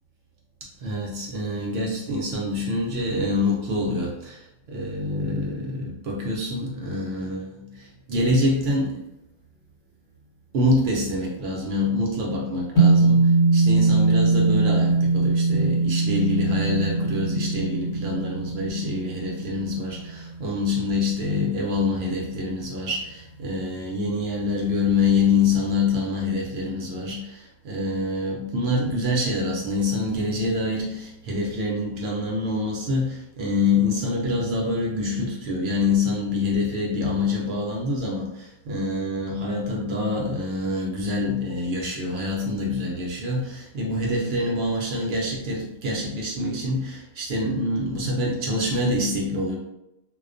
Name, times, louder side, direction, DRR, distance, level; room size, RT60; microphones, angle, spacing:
voice 1, 0.8-9.0 10.5-49.6, left 2 dB, 65° right, -2 dB, 0.6 m, -26 dB
sound 1, 12.8-21.2, right 3 dB, 60° left, 0.9 m, -21 dB
2.3 x 2.1 x 2.4 m, 0.86 s
omnidirectional pair, 1.5 m